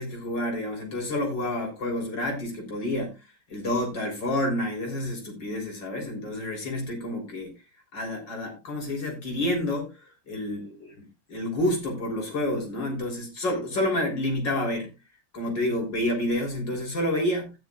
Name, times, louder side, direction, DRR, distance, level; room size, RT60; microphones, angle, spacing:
voice 1, 0.0-3.1 3.5-7.5 7.9-9.9 10.3-14.9 15.3-17.5, left 1 dB, 80° left, 2 dB, 4.3 m, -29 dB
15.5 x 10.0 x 2.4 m, 0.25 s
omnidirectional pair, 1.9 m